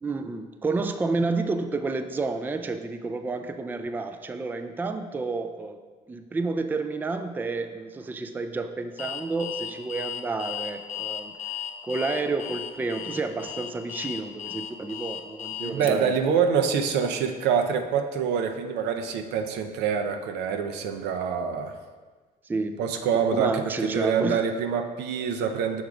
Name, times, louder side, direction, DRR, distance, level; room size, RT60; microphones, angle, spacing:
voice 1, 0.0-5.8 6.1-11.3 11.8-16.1 22.5-22.8 23.3-24.5, right 3 dB, 10° right, 8 dB, 0.3 m, -30 dB
Alarm, 9.0-15.9, left 9 dB, 45° left, 0.6 m, -35 dB
voice 2, 15.6-21.8 22.8-25.8, right 7 dB, 85° right, 6 dB, 0.6 m, -26 dB
6.5 x 3.5 x 4.9 m, 1.4 s
cardioid pair, 110°, 17 cm